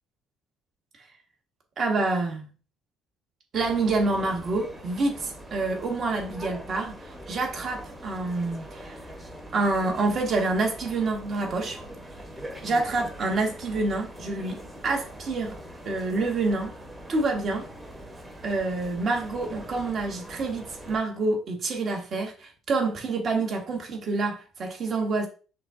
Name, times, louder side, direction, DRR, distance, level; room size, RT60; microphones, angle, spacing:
voice 1, 1.8-2.5 3.5-9.0 9.5-11.8 12.6-15.6 15.8-16.7 17.1-17.7 18.4-25.3, right 3 dB, 40° right, 1.4 m, -27 dB
sound 1, 3.5-21.0, equal, 10° right, 1.0 m, -43 dB
5.6 x 2.3 x 3.6 m
cardioid pair, 115°, 0 cm